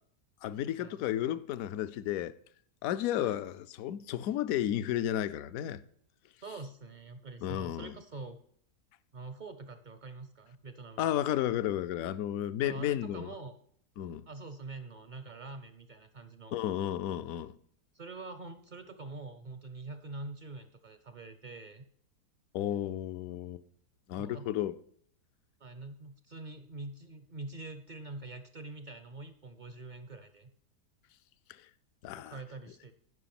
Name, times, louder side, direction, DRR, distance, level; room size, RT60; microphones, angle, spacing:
voice 1, 0.4-2.4 2.8-5.8 7.4-7.9 11.0-13.3 14.0-14.3 16.5-17.5 22.5-23.6 24.1-24.8 31.5-31.6 32.0-32.4, left 12 dB, 70° left, 1.0 m, -33 dB
voice 2, 6.4-8.4 9.1-11.2 12.6-13.5 14.3-16.6 17.9-21.8 24.2-24.5 25.6-30.5 32.1-32.9, right 3 dB, 50° right, 0.5 m, -45 dB
11.0 x 5.5 x 5.9 m
omnidirectional pair, 1.7 m